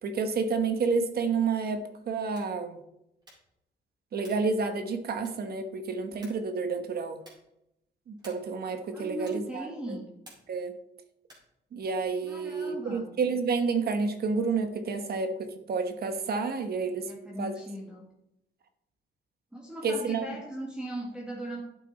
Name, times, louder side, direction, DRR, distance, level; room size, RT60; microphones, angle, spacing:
voice 1, 0.0-2.8 4.1-7.2 8.1-10.0 10.5-10.7 11.7-17.1 17.4-17.5 19.8-20.4, right 4 dB, 55° right, 8 dB, 1.1 m, -30 dB
sound 1, 2.2-2.6 3.2-3.6 4.2-4.5 5.2-5.6 6.2-6.5 7.2-7.5 8.2-8.6 9.2-9.6 10.2-10.6 11.2-11.6, right 1 dB, 20° right, 4.7 m, -54 dB
voice 2, 8.9-10.1 12.2-13.2 17.1-18.1 19.5-21.6, equal, 5° right, -2 dB, 1.7 m, -38 dB
11.5 x 8.3 x 4.1 m, 0.83 s
wide cardioid pair, 165°, 19 cm